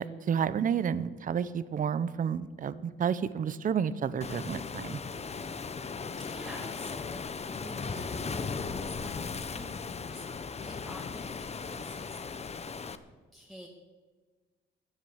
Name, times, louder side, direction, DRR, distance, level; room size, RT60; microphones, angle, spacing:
voice 1, 0.0-5.0, right 7 dB, 45° right, 16 dB, 0.7 m, -30 dB
Waves surf, 4.2-13.0, left 5 dB, 30° left, 0.9 m, -37 dB
voice 2, 6.2-7.2 7.6-12.4 13.3-13.7, equal, ahead, -1 dB, 1.9 m, -48 dB
15.0 x 9.5 x 7.2 m, 1.4 s
cardioid pair, 90°, 20 cm